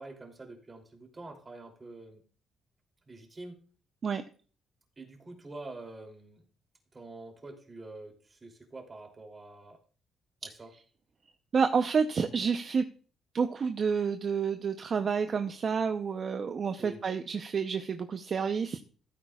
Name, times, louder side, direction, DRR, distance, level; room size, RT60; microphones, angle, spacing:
voice 1, 0.0-2.2 3.1-3.6 5.0-6.4 6.9-9.8 10.6-10.7 16.8-17.0, right 2 dB, 30° right, 2 dB, 3.0 m, -46 dB
voice 2, 11.5-12.8 13.3-18.8, right 6 dB, 50° right, 8 dB, 0.7 m, -29 dB
15.0 x 8.8 x 2.4 m, 0.40 s
cardioid pair, 90°, 0 cm